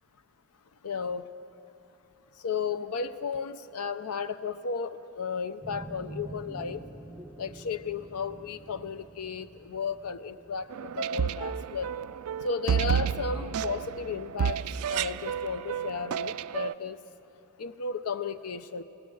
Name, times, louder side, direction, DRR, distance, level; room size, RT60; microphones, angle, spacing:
voice 1, 0.8-1.2 2.4-6.8 7.4-11.9 12.4-14.6 14.9-17.0 17.6-18.8, left 5 dB, 75° left, 11 dB, 0.6 m, -34 dB
sound 1, 5.6-12.2, right 2 dB, 5° right, 0.6 m, -47 dB
sound 2, 10.7-16.7, right 8 dB, 75° right, 0.4 m, -31 dB
29.5 x 18.5 x 4.8 m, 3.0 s
head